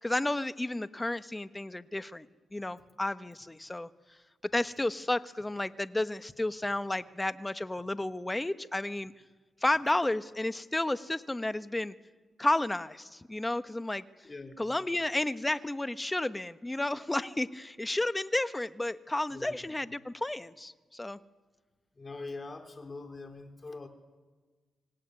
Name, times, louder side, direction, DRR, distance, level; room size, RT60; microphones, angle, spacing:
voice 1, 0.0-3.9 4.4-9.1 9.6-11.9 12.4-14.0 14.6-21.2, left 1 dB, 20° left, 12 dB, 1.3 m, -32 dB
voice 2, 14.2-14.7 19.3-19.7 22.0-23.9, left 3 dB, 35° left, 5 dB, 4.3 m, -43 dB
25.5 x 18.0 x 9.8 m, 1.4 s
supercardioid pair, 55°, 0 cm